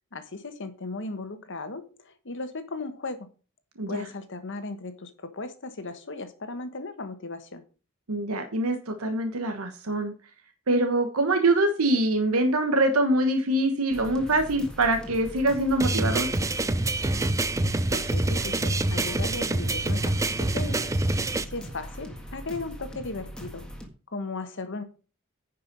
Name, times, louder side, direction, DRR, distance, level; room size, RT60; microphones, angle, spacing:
voice 1, 0.1-3.3 3.9-7.6 17.9-20.9 21.4-23.6 24.1-24.8, left 3 dB, 60° left, 10 dB, 1.3 m, -36 dB
voice 2, 8.1-10.1 10.7-16.3, right 2 dB, 85° right, 6 dB, 1.3 m, -24 dB
sound 1, 13.9-23.9, equal, 5° left, 1.7 m, -41 dB
sound 2, 15.8-21.4, right 2 dB, 15° right, 0.5 m, -26 dB
9.9 x 5.6 x 5.4 m, 0.36 s
head